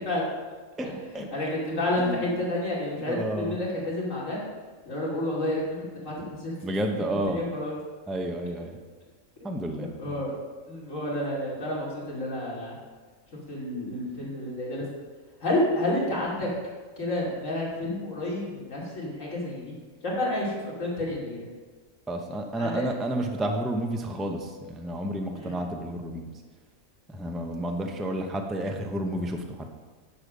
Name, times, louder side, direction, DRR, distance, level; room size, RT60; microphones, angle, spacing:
voice 1, 0.8-1.3 2.0-2.3 3.0-3.5 6.6-7.4 8.1-8.8 9.4-10.2 22.1-26.3 27.1-29.7, right 1 dB, ahead, 3 dB, 0.6 m, -31 dB
voice 2, 1.3-4.4 4.8-5.6 6.0-6.5 7.0-7.8 9.8-10.3 10.7-12.8 13.5-14.8 15.4-16.5 17.0-19.7 20.0-21.4 22.6-22.9 25.3-25.6, left 1 dB, 65° left, -5 dB, 3.2 m, -30 dB
10.5 x 7.0 x 5.1 m, 1.4 s
omnidirectional pair, 1.4 m